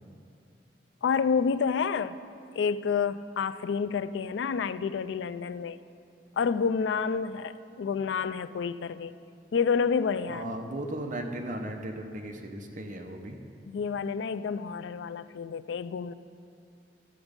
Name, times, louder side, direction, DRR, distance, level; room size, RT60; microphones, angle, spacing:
voice 1, 1.0-2.2 2.5-5.8 6.4-9.1 9.5-10.4 13.7-16.1, left 6 dB, 90° left, 15 dB, 0.3 m, -29 dB
voice 2, 10.3-13.4, right 1 dB, 45° right, 3 dB, 0.9 m, -36 dB
12.5 x 7.1 x 5.1 m, 2.5 s
head